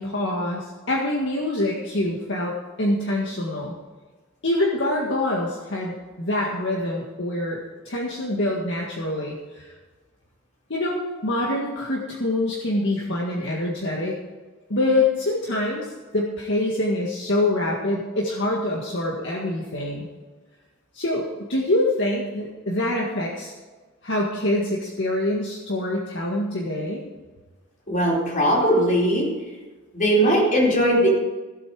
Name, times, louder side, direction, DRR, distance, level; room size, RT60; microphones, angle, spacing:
voice 1, 0.0-3.7 4.4-9.7 10.7-14.2 14.7-20.1 20.9-23.5 24.0-27.0, left 1 dB, 60° left, -2 dB, 1.8 m, -25 dB
voice 2, 27.9-29.4 29.9-31.1, equal, 40° left, -3 dB, 4.0 m, -19 dB
17.0 x 8.2 x 4.8 m, 1.3 s
head